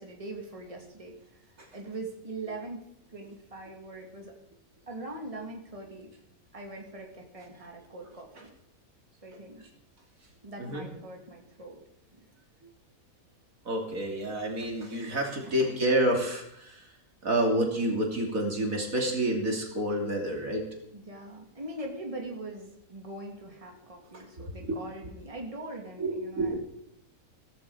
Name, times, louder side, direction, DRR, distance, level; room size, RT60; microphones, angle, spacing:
voice 1, 0.0-1.5 1.7-4.3 4.9-6.1 6.5-8.5 9.2-9.6 10.4-11.8 12.1-12.3 15.3-15.8 20.9-26.6, right 2 dB, 20° right, 1 dB, 2.6 m, -42 dB
voice 2, 13.6-16.9 17.2-20.6 26.0-26.6, right 1 dB, 65° right, 1 dB, 3.4 m, -28 dB
16.0 x 15.5 x 5.0 m, 0.73 s
omnidirectional pair, 1.5 m